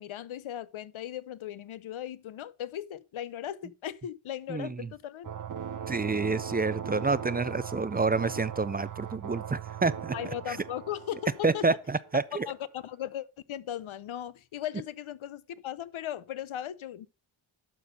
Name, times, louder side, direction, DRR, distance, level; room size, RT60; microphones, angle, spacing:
voice 1, 0.0-5.3 10.1-11.7 12.1-17.1, left 11 dB, 70° left, 0.7 m, -37 dB
voice 2, 4.5-4.9 5.9-10.1 10.5-10.6 11.4-12.5, right 3 dB, 20° right, 0.3 m, -28 dB
sound 1, 5.2-12.5, right 8 dB, 40° right, 0.7 m, -39 dB
12.0 x 4.3 x 5.2 m
wide cardioid pair, 90°, 50 cm